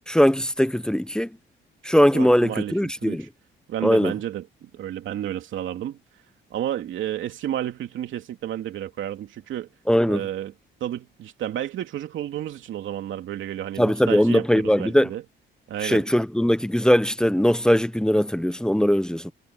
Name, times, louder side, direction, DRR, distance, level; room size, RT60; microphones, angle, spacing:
voice 1, 0.1-1.3 1.8-3.3 3.8-4.1 9.9-10.2 13.8-15.1 15.8-19.3, equal, 5° left, 0.9 m, -20 dB
voice 2, 1.8-3.3 3.7-6.0 6.5-9.7 10.1-10.5 10.8-15.2 15.7-16.1, right 11 dB, 75° right, 2.9 m, -31 dB
cardioid pair, 90°, 20 cm